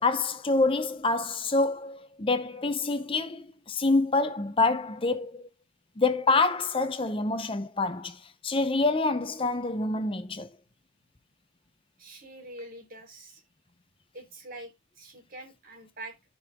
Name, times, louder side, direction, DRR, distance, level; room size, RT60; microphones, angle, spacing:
voice 1, 0.0-5.5 6.0-10.5, left 3 dB, 25° left, 0.7 m, -27 dB
voice 2, 12.0-13.4 14.1-16.4, right 1 dB, 45° right, 3.5 m, -45 dB
13.0 x 5.4 x 3.5 m
head